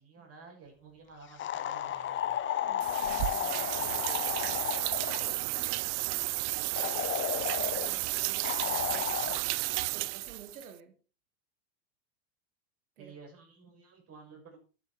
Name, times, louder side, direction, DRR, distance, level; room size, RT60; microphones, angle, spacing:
voice 1, 0.0-2.4 13.0-14.6, right 4 dB, 35° right, 2 dB, 6.7 m, -53 dB
sound 1, 1.4-5.4 6.8-7.9 8.4-9.4, left 10 dB, 25° left, 1.1 m, -33 dB
voice 2, 2.6-9.3 9.9-10.9 13.0-13.1, right 8 dB, 90° right, 6 dB, 2.3 m, -52 dB
sound 2, 2.8-10.7, right 22 dB, 55° right, 0.6 m, -32 dB
11.5 x 10.0 x 4.9 m, 0.36 s
supercardioid pair, 115°, 42 cm